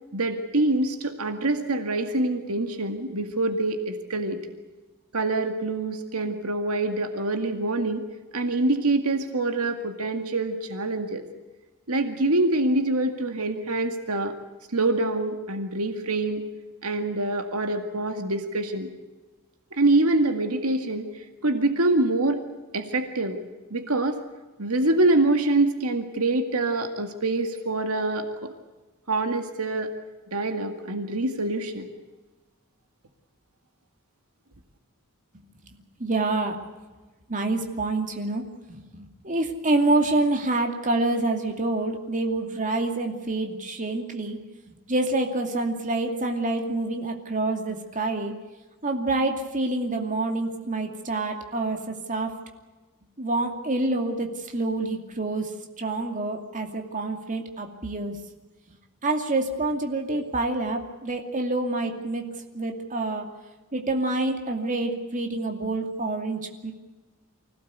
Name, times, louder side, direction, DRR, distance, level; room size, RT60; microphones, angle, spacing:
voice 1, 0.1-4.4 5.1-8.0 8.3-11.2 11.9-14.3 14.7-16.4 16.8-18.9 19.7-22.4 22.7-23.4 23.7-24.2 24.6-28.5 29.1-29.9 30.3-31.9, right 2 dB, 75° right, 6 dB, 2.1 m, -25 dB
voice 2, 36.0-36.6 37.3-38.4 38.7-44.4 44.7-48.3 48.8-52.3 53.2-58.1 59.0-62.2 62.5-63.3 63.7-66.7, right 2 dB, 35° right, 3 dB, 2.5 m, -27 dB
25.0 x 17.0 x 8.3 m, 1.2 s
head